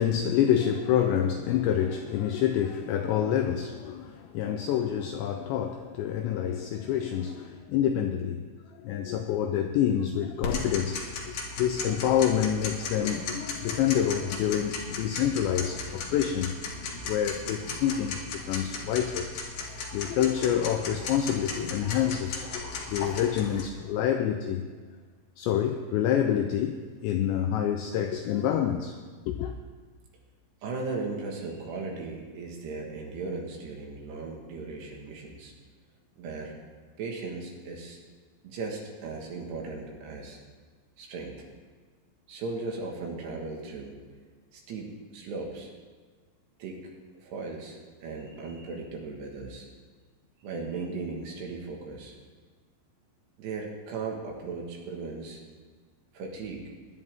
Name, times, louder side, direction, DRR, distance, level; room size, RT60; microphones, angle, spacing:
voice 1, 0.0-8.4 8.7-16.6 17.0-19.3 19.9-24.7 25.4-29.0 29.3-29.5, left 9 dB, 85° left, 2.6 m, -27 dB
Tick-tock, 10.4-23.6, left 4 dB, 60° left, 3.0 m, -36 dB
voice 2, 30.6-35.5 36.2-36.5 37.0-38.0 38.4-40.4 41.0-41.5 42.3-44.0 44.5-45.7 46.6-49.7 50.4-52.2 53.4-55.4 56.1-56.7, right 3 dB, 65° right, 3.3 m, -37 dB
21.5 x 10.5 x 3.5 m
omnidirectional pair, 5.8 m